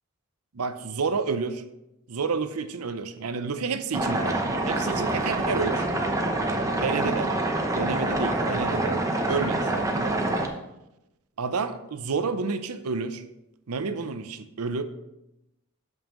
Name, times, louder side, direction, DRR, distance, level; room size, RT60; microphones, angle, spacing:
voice 1, 0.5-1.6 2.1-5.9 6.7-7.3 7.7-10.2 11.4-13.2 13.7-14.8, right 4 dB, 90° right, 11 dB, 0.6 m, -30 dB
sound 1, 3.9-10.5, right 2 dB, 15° right, 0.7 m, -26 dB
12.5 x 5.5 x 3.0 m, 0.89 s
head